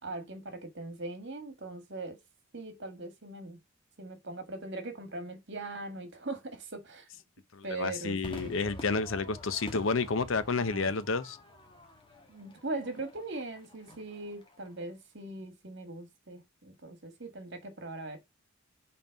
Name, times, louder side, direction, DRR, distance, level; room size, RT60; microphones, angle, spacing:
voice 1, 0.0-2.2 2.5-3.6 4.0-7.1 7.6-8.5 10.6-10.9 12.3-18.2, right 2 dB, 55° right, 1.8 m, -40 dB
voice 2, 7.5-11.4, left 4 dB, 65° left, 0.7 m, -30 dB
Crowd / Fireworks, 8.2-14.8, left 1 dB, 25° left, 1.6 m, -48 dB
5.5 x 4.4 x 5.2 m
head